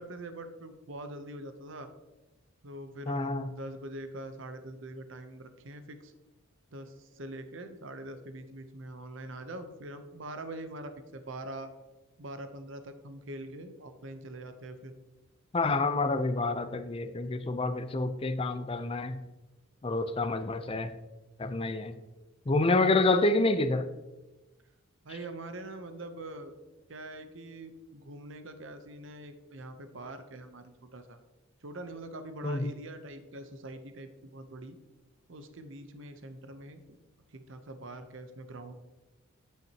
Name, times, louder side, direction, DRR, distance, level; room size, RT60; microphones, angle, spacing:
voice 1, 0.0-1.9 2.6-6.1 6.7-11.7 12.2-14.9 22.8-23.0 25.0-26.5 26.9-30.6 30.9-31.2 31.6-34.8 35.3-37.0 37.3-38.7, right 1 dB, 60° right, 8 dB, 0.8 m, -43 dB
voice 2, 3.1-3.5 15.5-19.2 19.8-20.9 21.4-22.0 22.5-23.9 32.4-32.7, left 2 dB, 25° left, 10 dB, 0.5 m, -28 dB
9.1 x 9.0 x 2.9 m, 1.1 s
head